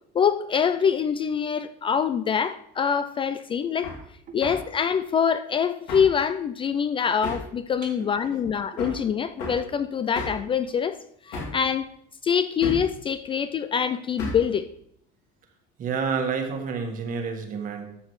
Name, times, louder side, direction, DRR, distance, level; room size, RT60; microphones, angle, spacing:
voice 1, 0.1-3.9 4.3-11.0 11.2-11.9 12.2-14.7, left 7 dB, 25° left, 0.3 m, -25 dB
Hammer, 3.8-4.0 4.4-4.7 5.9-6.2 7.2-7.5 8.8-9.0 9.4-9.6 10.1-10.5 11.3-11.6 12.6-12.9 14.2-14.5, left 2 dB, 80° left, 2.6 m, -33 dB
voice 2, 7.8-8.3 8.7-8.8 15.8-17.9, right 5 dB, 45° right, 1.6 m, -30 dB
12.5 x 6.4 x 3.2 m
cardioid pair, 130°, 19 cm